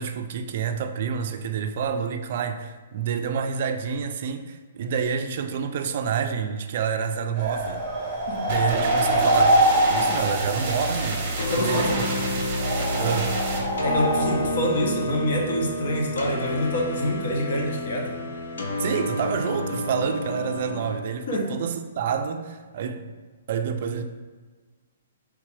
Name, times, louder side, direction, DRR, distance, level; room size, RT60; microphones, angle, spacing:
voice 1, 0.0-7.9 8.5-9.6 9.9-11.2 11.6-12.1 13.0-13.4 18.8-23.0 23.5-24.0, right 7 dB, 50° right, 7 dB, 0.3 m, -28 dB
sound 1, 7.4-14.5, right 1 dB, 15° right, 1.2 m, -24 dB
sound 2, 8.5-13.6, right 2 dB, 35° right, 0.9 m, -30 dB
sound 3, 11.4-21.0, left 1 dB, 90° left, 0.8 m, -30 dB
voice 2, 11.5-12.0 13.8-18.1 21.3-21.5, left 1 dB, 55° left, -1 dB, 1.0 m, -26 dB
4.5 x 3.3 x 3.3 m, 1.4 s
hypercardioid pair, 160°, 0 cm